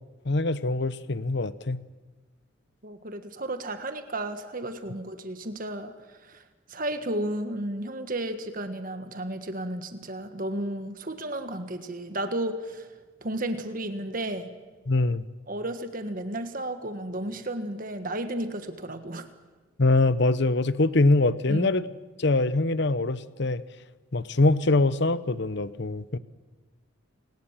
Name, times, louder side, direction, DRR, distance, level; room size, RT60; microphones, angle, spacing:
voice 1, 0.2-1.8 14.9-15.2 19.8-21.9 22.2-23.6 24.1-26.2, left 2 dB, 60° left, 15 dB, 0.8 m, -23 dB
voice 2, 2.8-5.9 6.2-6.4 6.7-12.9 13.2-14.5 15.5-19.3 21.5-21.7, right 1 dB, 45° right, 8 dB, 1.5 m, -33 dB
28.5 x 18.5 x 7.5 m, 1.3 s
head